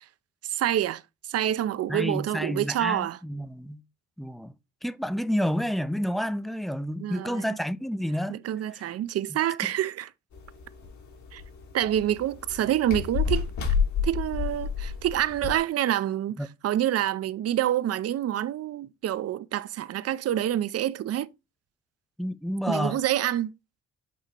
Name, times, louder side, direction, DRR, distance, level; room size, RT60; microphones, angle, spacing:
voice 1, 0.4-3.2 7.0-7.6 8.3-10.1 11.3-11.4 11.7-13.5 14.0-21.3 22.7-23.5, right 12 dB, 55° right, 0.5 m, -27 dB
voice 2, 1.9-3.8 4.2-4.5 4.8-8.4 16.4-16.5 22.2-23.0, equal, ahead, 0.4 m, -29 dB
sound 1, 10.3-15.6, left 6 dB, 70° left, 1.9 m, -30 dB
8.2 x 2.8 x 4.3 m
cardioid pair, 90°, 30 cm